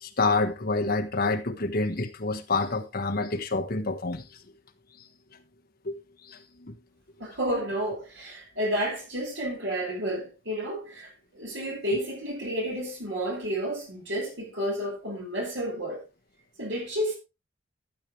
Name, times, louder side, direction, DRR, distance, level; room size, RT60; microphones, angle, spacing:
voice 1, 0.0-4.2 5.8-5.9 6.3-6.7, left 3 dB, 55° left, 1.4 m, -28 dB
voice 2, 7.2-16.0 16.6-17.1, equal, 70° right, 5.5 m, -31 dB
13.0 x 8.6 x 3.2 m
head